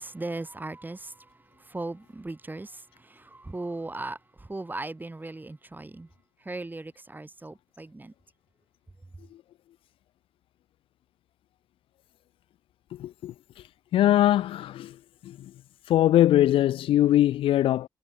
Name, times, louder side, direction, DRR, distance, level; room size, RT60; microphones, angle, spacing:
voice 1, 0.0-6.1 6.4-8.1, right 2 dB, 20° right, 5.4 m, -38 dB
voice 2, 13.0-13.3 13.9-15.0 15.2-15.5 15.9-17.9, left 13 dB, 90° left, 1.2 m, -21 dB
cardioid pair, 70°, 9 cm